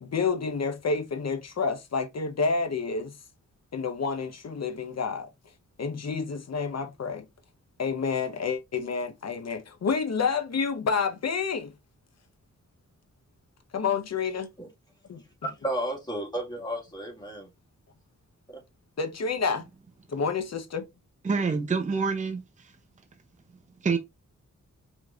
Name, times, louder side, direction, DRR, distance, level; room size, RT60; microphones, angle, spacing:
voice 1, 0.0-3.1 3.7-5.3 5.8-7.2 7.8-11.7 13.7-14.5 15.1-15.2 19.0-19.7 20.1-20.8, left 5 dB, 55° left, 0.9 m, -29 dB
voice 2, 15.4-17.5 18.5-18.6, right 1 dB, 15° left, 1.8 m, -33 dB
voice 3, 21.2-22.8 23.8-24.0, right 5 dB, 25° right, 0.6 m, -27 dB
4.9 x 3.0 x 2.4 m
wide cardioid pair, 85°, 31 cm